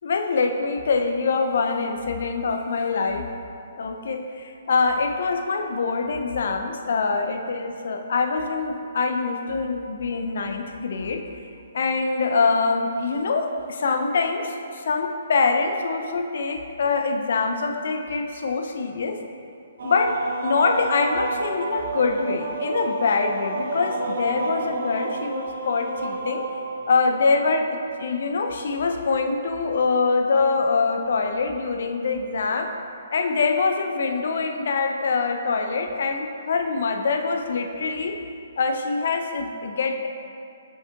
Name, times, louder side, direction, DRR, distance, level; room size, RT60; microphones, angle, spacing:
voice 1, 0.0-3.3 3.8-11.2 11.7-19.2 19.8-26.5 26.9-27.7 28.0-32.7 33.1-38.2 38.6-40.1, left 4 dB, 60° left, 5 dB, 0.5 m, -24 dB
sound 1, 19.8-27.4, right 3 dB, 65° right, 0.8 m, -30 dB
7.8 x 6.1 x 2.4 m, 2.5 s
figure-of-eight pair, 130°, 0 cm